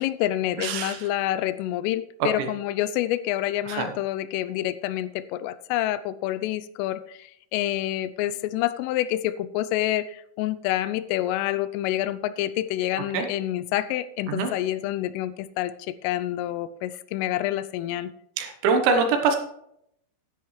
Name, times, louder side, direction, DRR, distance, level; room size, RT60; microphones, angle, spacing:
voice 1, 0.0-18.1, left 13 dB, 85° left, 15 dB, 3.1 m, -28 dB
voice 2, 0.6-1.0 3.7-3.9 13.1-13.3 14.3-14.5 18.4-19.4, right 5 dB, 75° right, 6 dB, 3.2 m, -23 dB
12.5 x 10.5 x 3.2 m, 0.73 s
omnidirectional pair, 5.8 m